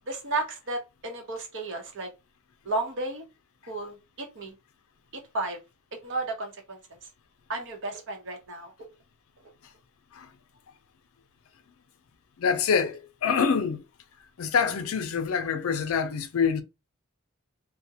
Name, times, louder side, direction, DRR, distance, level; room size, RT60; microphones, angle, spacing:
voice 1, 0.1-2.1 2.6-3.3 3.7-4.5 5.3-5.6 6.0-6.8 7.5-8.7, right 2 dB, 55° right, 0.8 m, -33 dB
voice 2, 12.4-13.8 14.4-16.6, left 6 dB, 65° left, 0.4 m, -26 dB
2.4 x 2.1 x 2.7 m
head